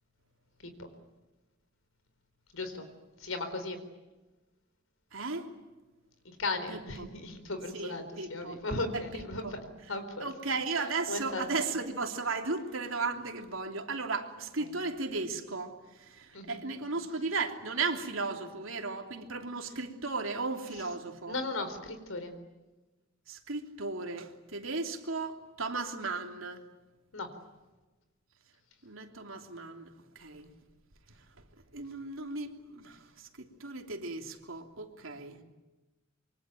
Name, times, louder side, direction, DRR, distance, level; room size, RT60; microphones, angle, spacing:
voice 1, 2.5-2.9 3.2-3.8 6.2-9.6 9.9-10.3 11.1-11.6 14.6-14.7 16.3-16.6 21.3-22.3 27.1-27.3, left 2 dB, 85° left, 9 dB, 4.3 m, -36 dB
voice 2, 5.1-5.5 6.7-7.1 7.7-8.6 8.9-9.5 10.2-21.4 23.3-26.6 28.8-30.5 31.7-35.4, right 3 dB, 80° right, 4 dB, 3.1 m, -36 dB
26.0 x 24.0 x 9.2 m, 1.1 s
head